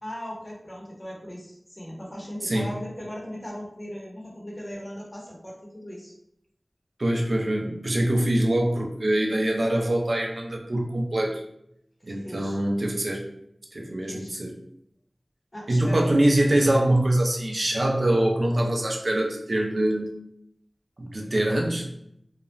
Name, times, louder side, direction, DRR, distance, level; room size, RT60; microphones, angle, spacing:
voice 1, 0.0-6.1 12.0-12.6 14.1-14.3 15.5-16.0, equal, 35° left, -3 dB, 0.9 m, -38 dB
voice 2, 7.0-11.4 12.0-13.2 13.7-14.5 15.7-20.1 21.0-21.9, right 1 dB, 65° right, 1 dB, 0.5 m, -24 dB
2.4 x 2.1 x 3.0 m, 0.76 s
wide cardioid pair, 50°, 0 cm